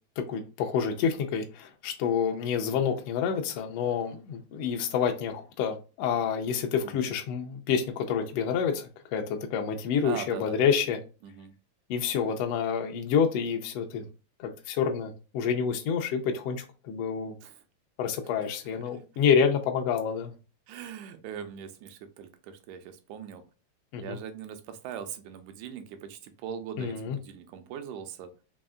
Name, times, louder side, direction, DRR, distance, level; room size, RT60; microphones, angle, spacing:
voice 1, 0.2-11.0 11.9-14.0 14.4-17.3 18.0-20.3 23.9-24.2 26.8-27.2, left 7 dB, 80° left, 1.4 m, -28 dB
voice 2, 10.0-10.8 11.2-11.5 17.4-17.6 20.7-23.4 24.0-28.3, right 8 dB, 90° right, 2.0 m, -41 dB
5.2 x 2.7 x 2.3 m
omnidirectional pair, 3.4 m